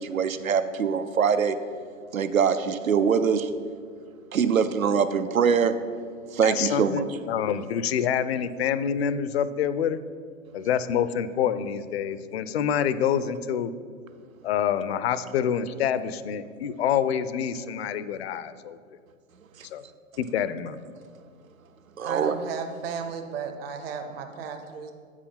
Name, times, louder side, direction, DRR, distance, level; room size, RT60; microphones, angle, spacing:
voice 1, 0.0-1.6 2.1-3.5 4.3-5.7 6.3-7.0 22.0-22.4, right 6 dB, 80° right, 11 dB, 0.6 m, -23 dB
voice 2, 6.4-10.0 10.5-13.7 14.4-18.8 19.7-19.8 20.2-20.8, left 8 dB, 50° left, 14 dB, 0.5 m, -27 dB
voice 3, 22.0-24.9, right 6 dB, 45° right, 6 dB, 0.8 m, -34 dB
8.3 x 4.9 x 5.5 m, 2.1 s
figure-of-eight pair, 105°, 40 cm